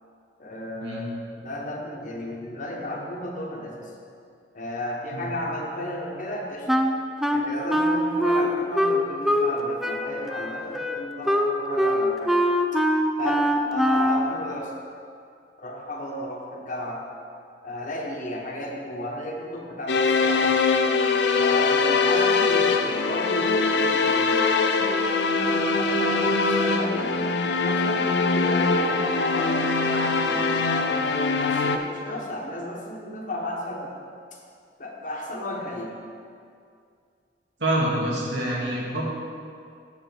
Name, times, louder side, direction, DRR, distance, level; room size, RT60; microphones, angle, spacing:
voice 1, 0.4-3.8 4.5-6.7 7.3-12.6 13.2-14.7 15.6-17.0 17.6-20.6 21.4-25.0 25.3-27.1 27.6-31.0 31.4-33.9 34.8-35.9, left 1 dB, 50° left, -1 dB, 1.3 m, -33 dB
Wind instrument woodwind instrument, 6.7-9.6 9.8-14.3, equal, ahead, 0.4 m, -23 dB
sound 1, 19.9-31.8, left 4 dB, 70° left, 0.5 m, -22 dB
voice 2, 37.6-39.0, right 1 dB, 80° right, -4 dB, 2.0 m, -26 dB
8.0 x 7.6 x 4.7 m, 2.3 s
head